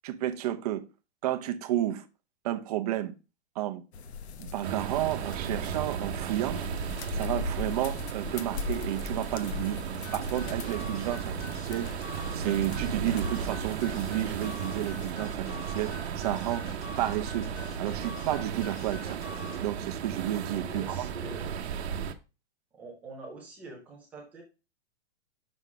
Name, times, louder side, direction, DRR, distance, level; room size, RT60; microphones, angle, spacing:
voice 1, 0.0-0.8 1.2-2.0 2.4-3.1 3.6-3.8 4.4-6.6 7.1-9.8 10.1-16.7 17.0-17.5 17.8-19.2 19.6-21.1, right 13 dB, 35° right, 0.6 m, -31 dB
sound 1, 3.9-15.1, left 5 dB, 80° left, 0.9 m, -41 dB
sound 2, 4.6-22.1, right 7 dB, 80° right, 0.9 m, -35 dB
sound 3, 10.0-19.6, left 4 dB, 20° left, 1.2 m, -46 dB
voice 2, 20.6-21.4 22.7-24.4, right 2 dB, 5° right, 0.3 m, -44 dB
6.1 x 3.8 x 5.5 m
hypercardioid pair, 160°, 32 cm